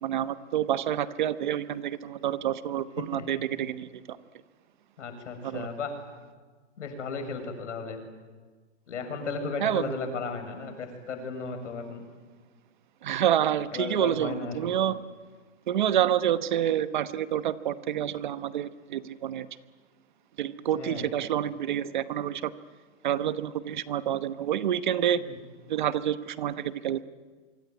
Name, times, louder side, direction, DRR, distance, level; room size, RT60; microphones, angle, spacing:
voice 1, 0.0-4.2 5.4-5.7 9.6-9.9 13.0-15.0 15.7-19.5 20.4-22.5 23.0-25.2 25.7-27.0, right 10 dB, 40° right, 13 dB, 1.0 m, -28 dB
voice 2, 5.0-5.9 6.8-8.0 8.9-12.0 13.7-14.8 20.7-21.1 25.2-25.4, left 4 dB, 85° left, 6 dB, 7.0 m, -35 dB
24.5 x 24.5 x 9.5 m, 1.4 s
hypercardioid pair, 180°, 35 cm